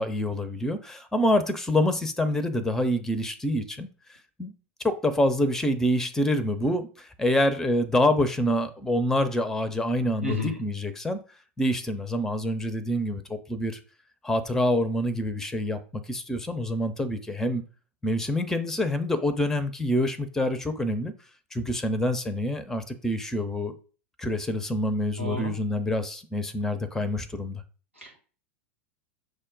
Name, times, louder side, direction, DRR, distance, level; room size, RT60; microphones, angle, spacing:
voice 1, 0.0-3.9 4.4-4.5 4.8-11.2 11.6-13.8 14.2-17.6 18.0-21.1 21.5-23.7 24.2-27.6, left 1 dB, 5° left, 12 dB, 0.5 m, -26 dB
voice 2, 10.2-10.6 25.2-25.5 28.0-28.2, left 1 dB, 90° right, 0 dB, 1.3 m, -31 dB
6.4 x 2.2 x 3.7 m, 0.38 s
figure-of-eight pair, 85°, 7 cm